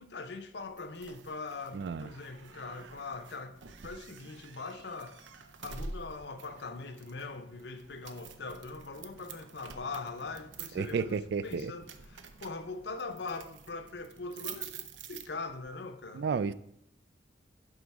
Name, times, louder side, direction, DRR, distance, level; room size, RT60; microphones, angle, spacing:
voice 1, 0.0-5.3 5.6-16.3, left 3 dB, 65° left, 0.7 m, -42 dB
sound 1, 0.8-15.7, right 5 dB, 85° right, 0.7 m, -48 dB
voice 2, 1.7-2.1 10.8-11.7 16.1-16.5, right 5 dB, 65° right, 0.3 m, -32 dB
11.0 x 3.8 x 4.7 m
head